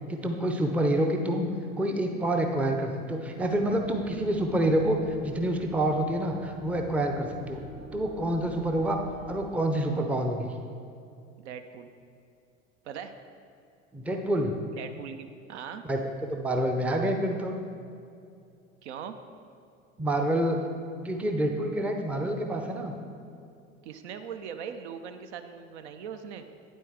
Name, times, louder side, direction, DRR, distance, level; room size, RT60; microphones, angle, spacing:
voice 1, 0.1-7.6 7.9-9.0 9.3-10.5 13.9-14.6 15.9-16.0 16.3-17.5 20.0-20.6 21.0-23.0, right 1 dB, 5° right, 3 dB, 0.5 m, -27 dB
sound 1, 3.4-9.5, right 2 dB, 40° right, 1.1 m, -47 dB
voice 2, 11.4-11.9 12.8-13.1 14.7-15.8 18.8-19.2 23.8-26.5, right 7 dB, 60° right, 8 dB, 0.6 m, -40 dB
9.0 x 8.3 x 3.5 m, 2.5 s
figure-of-eight pair, 75°, 38 cm